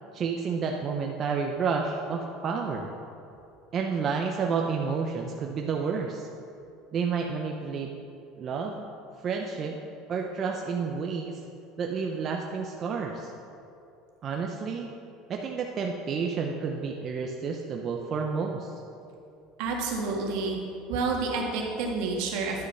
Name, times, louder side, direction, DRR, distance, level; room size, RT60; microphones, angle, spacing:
voice 1, 0.1-2.9 3.7-6.3 6.9-7.9 8.4-8.9 9.2-9.8 10.1-11.4 11.8-13.3 14.2-14.9 15.3-18.7, right 5 dB, 40° right, 2 dB, 0.7 m, -30 dB
voice 2, 19.6-20.6 20.9-22.7, right 4 dB, 75° right, 0 dB, 1.8 m, -29 dB
10.0 x 6.4 x 5.6 m, 2.6 s
supercardioid pair, 110°, 0 cm